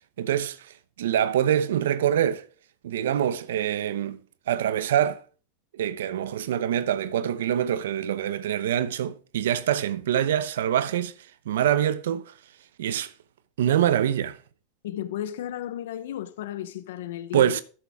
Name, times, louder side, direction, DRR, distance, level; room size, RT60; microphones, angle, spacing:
voice 1, 0.2-2.4 2.8-4.2 4.5-5.2 5.7-11.1 11.5-12.3 12.8-13.1 13.6-14.4 17.3-17.6, right 10 dB, 90° right, 0.8 m, -25 dB
voice 2, 14.8-17.6, left 11 dB, 85° left, 0.8 m, -34 dB
13.5 x 7.3 x 3.6 m
supercardioid pair, 135°, 0 cm